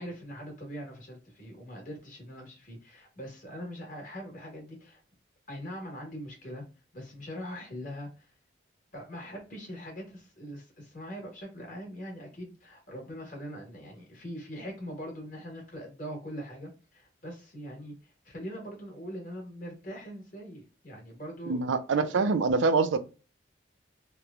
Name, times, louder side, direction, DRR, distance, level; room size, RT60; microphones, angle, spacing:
voice 1, 0.0-5.0 5.5-6.6 6.9-8.3 8.9-21.8, equal, 45° left, 1.2 m, -42 dB
voice 2, 21.5-23.0, right 4 dB, 85° right, 0.4 m, -25 dB
2.9 x 2.1 x 2.3 m
head